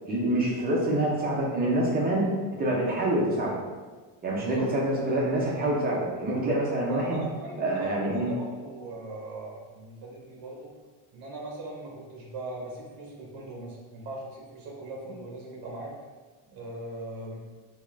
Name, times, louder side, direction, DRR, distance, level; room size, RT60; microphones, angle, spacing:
voice 1, 0.1-2.3 2.6-3.6 4.2-7.2 7.6-8.3, right 1 dB, 20° right, -3 dB, 0.4 m, -26 dB
voice 2, 4.3-4.9 6.9-10.7 11.1-15.9 16.5-17.5, right 2 dB, 45° right, -2 dB, 0.9 m, -39 dB
3.5 x 2.4 x 3.1 m, 1.4 s
cardioid pair, 165°, 49 cm